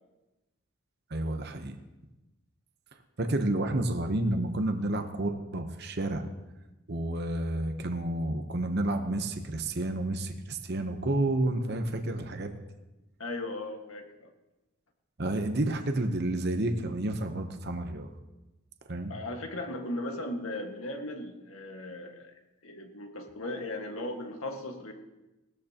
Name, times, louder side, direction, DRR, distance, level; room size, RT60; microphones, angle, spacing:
voice 1, 1.1-1.8 3.2-6.2 6.9-12.5 15.2-18.1 18.9-19.1, right 1 dB, 45° right, 6 dB, 0.9 m, -30 dB
voice 2, 13.2-14.3 19.1-22.3 22.6-24.9, left 1 dB, 70° left, 3 dB, 1.7 m, -37 dB
18.5 x 13.0 x 2.9 m, 1.0 s
head